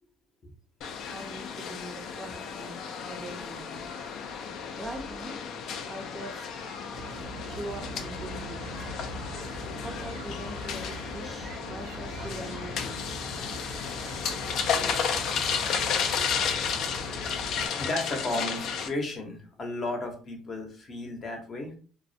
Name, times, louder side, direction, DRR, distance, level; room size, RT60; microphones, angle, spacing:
sound 1, 0.8-18.9, left 6 dB, 65° left, 0.3 m, -33 dB
voice 1, 1.1-2.8 3.1-3.9 4.8-5.4 5.9-6.5 7.4-8.8 9.8-13.3, right 1 dB, 15° right, 0.5 m, -42 dB
Cat, 1.8-3.2 3.7-5.1 5.7-8.0 8.5-11.4 11.9-13.1 13.6-15.4, left 3 dB, 90° left, 0.8 m, -51 dB
voice 2, 4.1-4.8 6.9-7.0 11.2-11.4 14.6-15.1 16.2-16.7 17.8-21.7, left 2 dB, 40° left, 0.7 m, -35 dB
sound 2, 6.9-17.7, right 2 dB, 85° right, 0.4 m, -42 dB
2.3 x 2.0 x 2.6 m
supercardioid pair, 90°, 0 cm